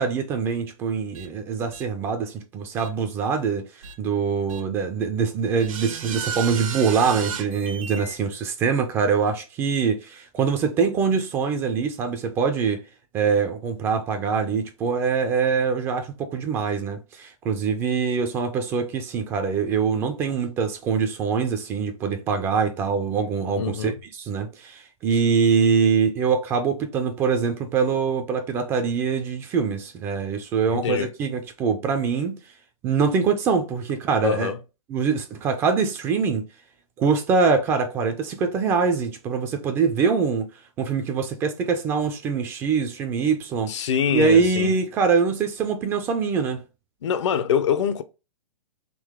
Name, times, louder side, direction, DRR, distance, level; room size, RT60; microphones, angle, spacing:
voice 1, 0.0-3.7 4.0-12.8 13.1-32.4 32.8-34.5 34.9-36.5 37.0-40.5 40.8-46.6, right 5 dB, 15° right, 0.3 m, -24 dB
sound 1, 1.1-1.3 1.7-1.8 2.8-2.9 3.8-3.9 4.5-4.6 5.6-8.1, right 7 dB, 80° right, 1.0 m, -33 dB
voice 2, 23.6-23.9 30.7-31.1 34.2-34.6 43.7-44.7 47.0-48.0, left 8 dB, 60° left, 0.6 m, -24 dB
3.7 x 2.9 x 3.5 m
hypercardioid pair, 155°, 17 cm